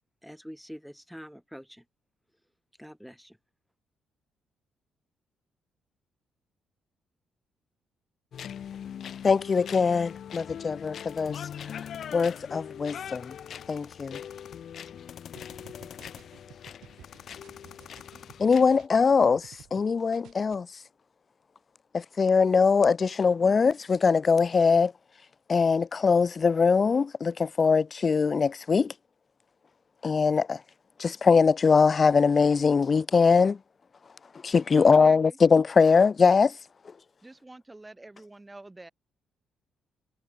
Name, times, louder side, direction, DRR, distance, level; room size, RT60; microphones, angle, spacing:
voice 1, 0.2-1.8 2.8-3.4, equal, ahead, 3.2 m, -45 dB
sound 1, 8.3-18.9, left 9 dB, 60° left, 2.9 m, -41 dB
voice 2, 9.2-11.4 11.8-11.9 12.1-13.3 13.7-14.2 18.4-20.7 21.9-24.9 25.5-28.9 30.0-30.6 31.0-33.6 34.4-36.5, left 5 dB, 35° left, 0.7 m, -22 dB
sound 2, 15.4-19.8 20.1-20.5, right 12 dB, 80° right, 4.7 m, -53 dB
voice 3, 34.7-35.4 37.2-38.9, right 2 dB, 15° right, 4.0 m, -46 dB
cardioid pair, 90°, 0 cm